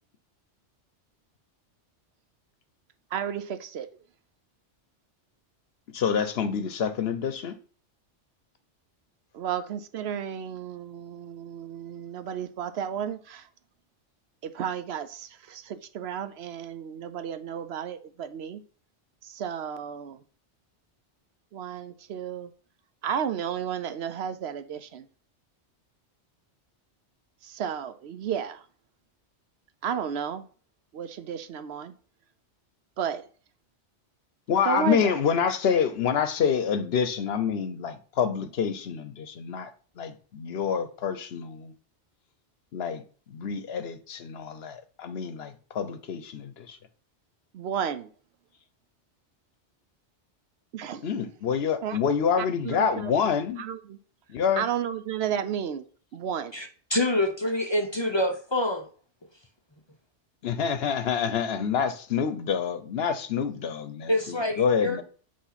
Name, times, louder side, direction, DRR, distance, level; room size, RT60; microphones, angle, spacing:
voice 1, 3.1-3.9 9.3-13.5 14.4-18.6 19.2-20.2 21.5-22.5 23.0-25.1 27.4-28.6 29.8-30.5 30.9-31.9 33.0-33.2 34.6-35.2 47.5-48.1 50.7-51.0 51.8-52.0 52.4-53.1 53.6-54.0 54.6-55.8 56.1-56.5, right 8 dB, 70° right, 0.8 m, -32 dB
voice 2, 5.9-7.6 34.5-39.7 40.0-41.7 42.7-43.0 43.3-46.8 51.0-53.6 54.3-54.7 60.4-65.0, left 7 dB, 65° left, 0.9 m, -27 dB
voice 3, 56.5-58.8 64.1-65.0, left 1 dB, 30° left, 0.6 m, -26 dB
8.3 x 3.1 x 5.7 m
omnidirectional pair, 1.2 m